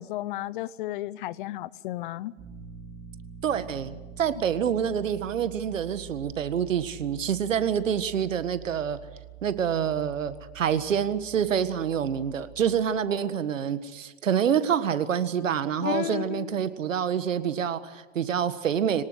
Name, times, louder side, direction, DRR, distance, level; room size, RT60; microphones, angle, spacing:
voice 1, 0.0-2.3 15.8-16.6, left 15 dB, 40° left, 0.8 m, -33 dB
sound 1, 2.4-12.8, right 9 dB, 35° right, 4.1 m, -46 dB
voice 2, 3.4-9.0 9.4-19.0, right 8 dB, 80° right, 1.7 m, -27 dB
23.5 x 19.0 x 8.0 m
hypercardioid pair, 130°, 38 cm